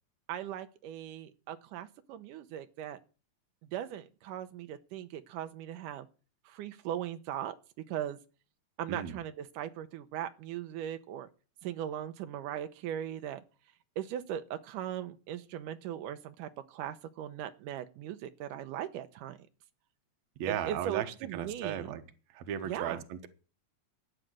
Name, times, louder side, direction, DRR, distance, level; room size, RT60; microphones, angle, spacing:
voice 1, 0.3-3.0 3.7-6.1 6.5-7.6 7.9-8.2 8.8-11.3 11.6-13.4 14.0-19.4 20.5-21.9 22.6-23.0, right 11 dB, 85° right, 9 dB, 2.4 m, -39 dB
voice 2, 20.4-21.1 21.3-22.0 22.3-23.3, right 9 dB, 65° right, 9 dB, 2.3 m, -35 dB
13.0 x 9.1 x 7.5 m, 0.36 s
omnidirectional pair, 3.6 m